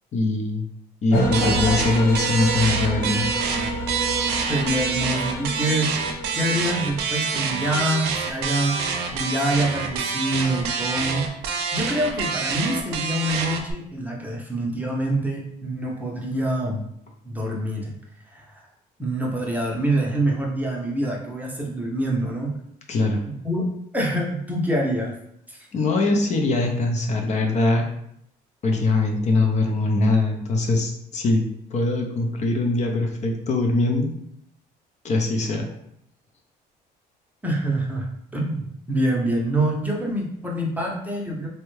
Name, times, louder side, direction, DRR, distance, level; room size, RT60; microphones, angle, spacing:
voice 1, 0.1-0.7 1.0-3.2 22.9-23.2 25.7-27.9 28.6-31.4 31.7-34.1 35.0-35.7, left 2 dB, 45° left, 2 dB, 0.5 m, -22 dB
sound 1, 1.1-7.1, equal, 75° left, 0.7 m, -28 dB
sound 2, 1.3-13.7, right 5 dB, 80° right, 0.5 m, -27 dB
voice 2, 4.5-6.0 6.3-11.4 11.7-16.9 17.2-17.9 18.3-18.6 19.0-22.6 23.3-25.1 25.5-25.7 37.4-41.5, right 1 dB, 10° right, -1 dB, 0.6 m, -26 dB
3.4 x 2.1 x 3.1 m, 0.73 s
cardioid pair, 110°, 17 cm